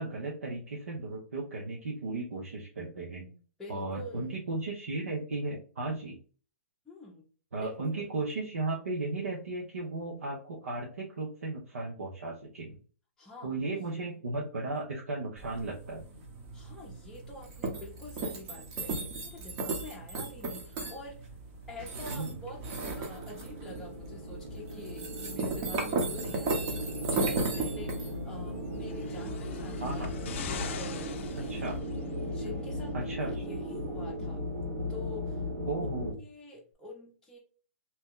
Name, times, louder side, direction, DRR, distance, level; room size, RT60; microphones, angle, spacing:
voice 1, 0.0-3.3 3.7-6.2 7.5-12.8 13.4-16.1 22.1-22.4 29.8-30.1 31.3-31.7 32.9-33.3 35.7-36.2, right 2 dB, 85° right, -2 dB, 0.8 m, -35 dB
voice 2, 3.2-4.5 6.9-7.3 7.6-8.2 13.2-14.2 16.5-21.3 21.7-30.1 30.5-31.8 32.2-34.4 34.9-35.5 36.2-37.4, left 2 dB, 5° left, -5 dB, 0.6 m, -47 dB
sound 1, 15.4-31.8, right 3 dB, 35° right, 0.8 m, -37 dB
sound 2, 22.3-36.1, equal, 70° right, 1.3 m, -37 dB
sound 3, 28.8-32.2 33.1-33.2, left 7 dB, 60° left, 0.4 m, -41 dB
2.8 x 2.1 x 3.6 m, 0.41 s
hypercardioid pair, 135°, 7 cm